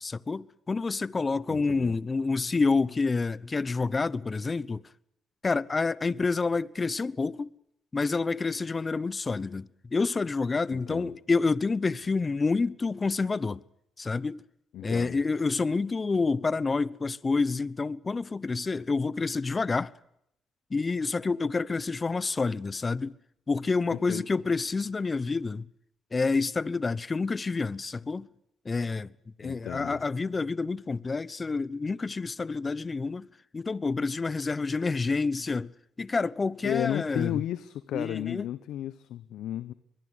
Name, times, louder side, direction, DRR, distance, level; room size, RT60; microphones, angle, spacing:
voice 1, 0.0-4.8 5.4-7.5 7.9-13.6 14.0-14.4 14.8-19.9 20.7-23.1 23.5-25.7 26.1-28.3 28.6-29.1 29.4-33.3 33.5-35.7 36.0-37.4 37.9-38.4, left 4 dB, 30° left, 1.0 m, -28 dB
voice 2, 1.5-2.0 10.7-11.1 14.7-15.2 23.9-24.2 29.4-30.0 36.6-39.7, left 12 dB, 70° left, 1.1 m, -33 dB
24.0 x 22.0 x 8.2 m
supercardioid pair, 60°, 0 cm